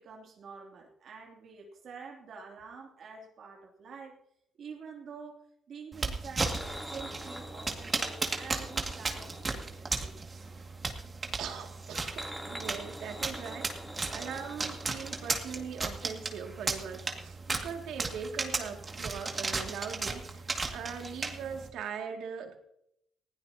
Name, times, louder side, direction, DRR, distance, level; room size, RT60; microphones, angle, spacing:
voice 1, 0.0-4.2 4.6-10.5, right 5 dB, 60° right, 1 dB, 2.9 m, -48 dB
sound 1, 5.9-21.7, right 3 dB, 30° right, 2.2 m, -36 dB
sound 2, 6.4-10.6 11.8-16.1 16.3-16.5 16.8-16.9, equal, ahead, 3.1 m, -45 dB
voice 2, 11.4-22.6, right 6 dB, 80° right, 3 dB, 2.4 m, -41 dB
20.0 x 15.5 x 2.9 m, 0.74 s
cardioid pair, 90°, 0 cm